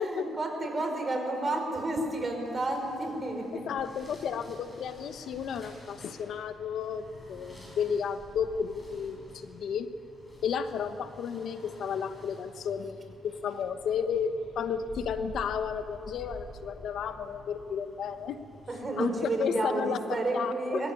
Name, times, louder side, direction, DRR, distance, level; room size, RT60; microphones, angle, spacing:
voice 1, 0.0-3.7 18.7-20.9, right 2 dB, 30° right, 3 dB, 4.9 m, -31 dB
sound 1, 2.3-19.5, left 1 dB, 15° left, 6.6 m, -50 dB
voice 2, 3.7-9.9 10.4-18.4 19.0-19.1 19.4-20.0 20.3-20.8, left 7 dB, 70° left, 10 dB, 1.1 m, -33 dB
23.0 x 15.0 x 9.8 m, 2.7 s
cardioid pair, 105°, 0 cm